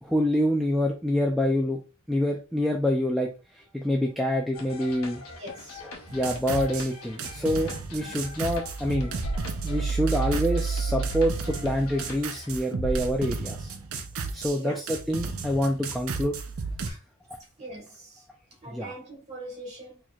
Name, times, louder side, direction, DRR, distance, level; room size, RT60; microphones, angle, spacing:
voice 1, 0.0-1.8 2.1-3.3 3.5-5.2 6.1-9.1 9.6-13.7 14.3-16.3 18.7-18.9, equal, ahead, 0.4 m, -26 dB
sound 1, 4.5-12.5, left 3 dB, 80° left, 0.9 m, -44 dB
voice 2, 5.4-5.8 8.0-8.2 14.5-14.8 16.8-17.0 17.6-18.2 18.6-20.0, right 1 dB, 30° right, 1.6 m, -41 dB
sound 2, 6.1-6.9 7.2-14.6 14.9-16.9, right 4 dB, 80° right, 0.6 m, -32 dB
4.5 x 2.9 x 2.3 m
head